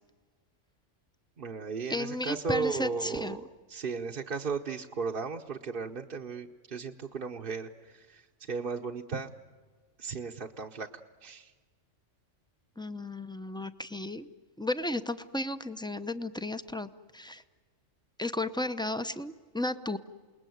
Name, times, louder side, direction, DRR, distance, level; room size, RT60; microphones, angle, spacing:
voice 1, 1.4-3.4 3.7-8.2 8.5-9.3 10.0-10.9 11.2-11.5, right 5 dB, 45° right, 1 dB, 1.1 m, -35 dB
voice 2, 1.9-3.4 12.8-14.3 14.6-17.4 18.2-20.0, left 1 dB, 5° left, 10 dB, 0.6 m, -34 dB
28.5 x 20.5 x 9.3 m, 1.5 s
omnidirectional pair, 1.3 m